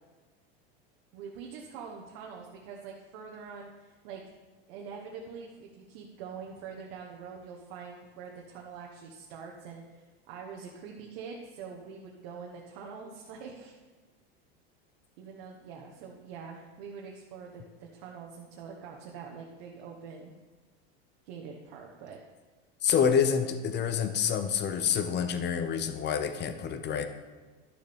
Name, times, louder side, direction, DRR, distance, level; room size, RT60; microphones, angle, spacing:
voice 1, 1.1-4.2 4.7-13.7 15.2-20.3 21.2-22.2, right 6 dB, 65° right, -1 dB, 1.2 m, -44 dB
voice 2, 22.8-27.1, left 7 dB, 35° left, 9 dB, 0.8 m, -27 dB
12.0 x 6.6 x 3.5 m, 1.3 s
supercardioid pair, 110°, 31 cm